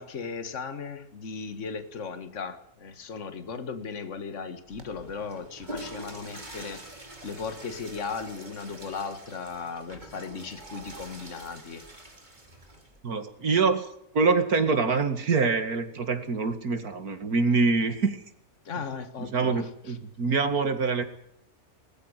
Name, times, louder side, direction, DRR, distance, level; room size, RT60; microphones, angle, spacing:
voice 1, 0.0-6.8 7.2-11.9 18.7-20.0, left 5 dB, 55° left, 10 dB, 2.0 m, -37 dB
Water / Toilet flush, 4.6-13.0, right 1 dB, 30° right, 3.3 m, -45 dB
voice 2, 13.0-13.9 14.1-18.2 19.2-21.0, right 4 dB, 85° right, 8 dB, 2.7 m, -25 dB
20.0 x 14.5 x 9.7 m, 0.73 s
omnidirectional pair, 1.5 m